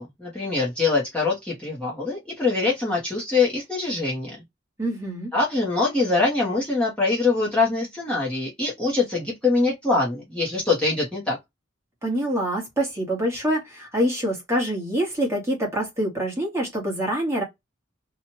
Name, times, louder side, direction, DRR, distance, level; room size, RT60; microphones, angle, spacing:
voice 1, 0.0-4.4 5.3-11.4, left 3 dB, 5° left, 1.0 m, -23 dB
voice 2, 4.8-5.3 12.0-17.4, right 1 dB, 15° right, 1.3 m, -25 dB
2.9 x 2.4 x 2.7 m
head